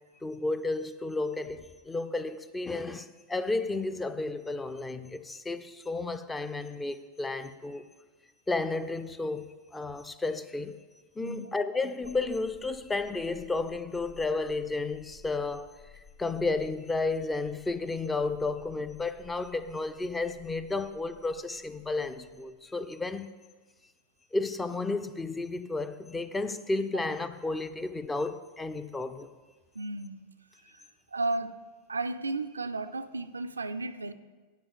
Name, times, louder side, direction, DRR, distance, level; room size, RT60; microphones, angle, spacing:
voice 1, 0.2-7.9 8.5-10.8 11.2-23.3 24.3-29.3, left 3 dB, 10° left, 0.4 m, -32 dB
voice 2, 11.2-11.5 29.8-30.2 31.1-31.6 31.9-34.1, right 2 dB, 75° right, 0.4 m, -33 dB
sound 1, 12.0-22.6, left 7 dB, 50° left, 1.6 m, -57 dB
9.4 x 5.0 x 6.7 m
figure-of-eight pair, 90°, 0 cm